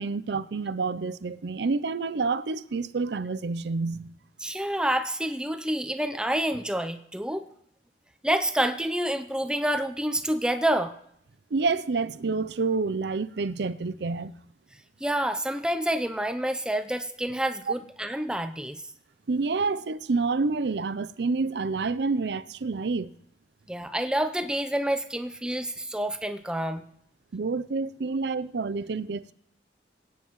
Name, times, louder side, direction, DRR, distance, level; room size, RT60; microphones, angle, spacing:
voice 1, 0.0-4.1 11.5-14.3 19.3-23.1 27.3-29.3, right 4 dB, 70° right, 0.5 m, -28 dB
voice 2, 4.4-7.5 8.2-11.0 15.0-18.8 23.7-26.8, right 1 dB, 5° right, 0.6 m, -28 dB
23.0 x 9.4 x 3.1 m
head